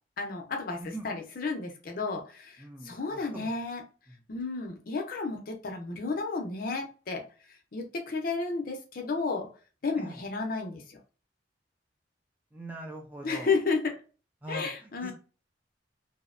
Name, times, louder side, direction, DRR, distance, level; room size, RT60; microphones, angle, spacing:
voice 1, 0.2-3.8 4.3-7.2 7.7-9.5 9.8-11.0 13.2-14.0 14.5-15.1, left 4 dB, 50° left, 3 dB, 0.5 m, -32 dB
voice 2, 2.6-3.5 10.0-10.2 12.5-13.5 14.4-15.1, right 1 dB, 10° right, 1 dB, 0.4 m, -42 dB
2.6 x 2.0 x 2.5 m, 0.36 s
head